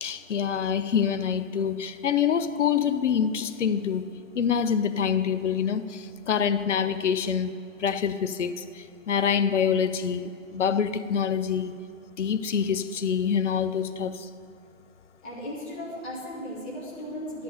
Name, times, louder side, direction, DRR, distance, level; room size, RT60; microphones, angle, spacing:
voice 1, 0.0-4.0 4.4-11.7 12.2-14.3, left 7 dB, 60° left, 11 dB, 0.7 m, -26 dB
voice 2, 15.2-17.4, equal, 10° left, -9 dB, 0.5 m, -36 dB
12.0 x 5.3 x 8.6 m, 2.3 s
hypercardioid pair, 150°, 40 cm